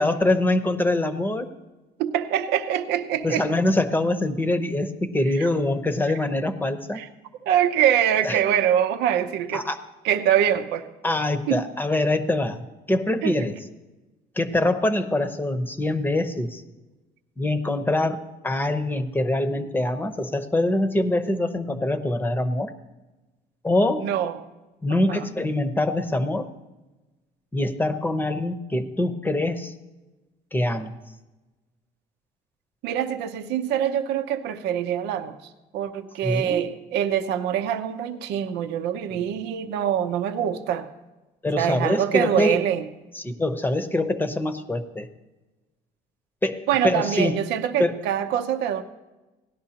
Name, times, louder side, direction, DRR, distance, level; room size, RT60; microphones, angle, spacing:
voice 1, 0.0-1.5 3.2-7.0 8.2-8.4 9.5-9.8 11.0-13.5 14.4-16.6 17.4-18.2 18.4-22.7 23.6-24.1 24.8-26.5 27.5-29.7 30.5-31.0 36.2-36.6 41.4-42.6 43.1-45.1 46.4-47.4 47.8-47.9, left 1 dB, 10° left, 8 dB, 0.9 m, -24 dB
voice 2, 2.0-3.4 5.4-5.5 6.9-7.1 7.4-9.6 10.0-10.9 11.5-11.6 13.2-13.5 24.0-24.4 24.9-25.2 32.8-35.4 35.7-40.9 41.6-42.8 46.7-48.8, right 10 dB, 85° right, 9 dB, 0.7 m, -24 dB
18.0 x 11.0 x 2.9 m, 1.1 s
cardioid pair, 110°, 17 cm